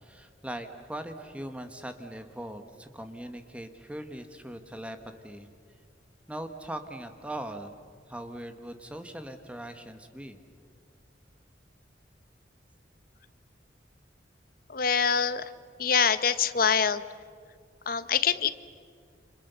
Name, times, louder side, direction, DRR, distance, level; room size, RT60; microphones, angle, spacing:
voice 1, 0.0-5.0 5.2-5.5 6.3-7.7 8.1-10.4, right 1 dB, 5° right, 7 dB, 1.3 m, -40 dB
voice 2, 14.7-15.5 15.8-17.0 17.9-18.5, left 7 dB, 50° left, 13 dB, 0.9 m, -25 dB
29.5 x 26.5 x 6.9 m, 2.2 s
head